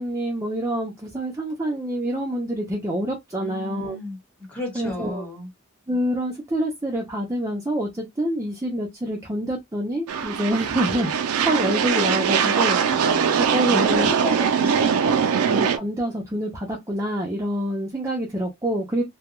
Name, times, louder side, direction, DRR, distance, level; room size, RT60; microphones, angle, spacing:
voice 1, 0.0-4.0 4.7-5.3 5.9-11.1 11.4-14.2 15.5-19.0, right 1 dB, 15° right, 0.5 m, -27 dB
voice 2, 3.4-4.2 4.5-5.5 12.9-15.5, left 2 dB, 5° left, 1.2 m, -34 dB
sound 1, 10.1-15.8, right 6 dB, 75° right, 0.4 m, -21 dB
2.2 x 2.2 x 2.9 m
head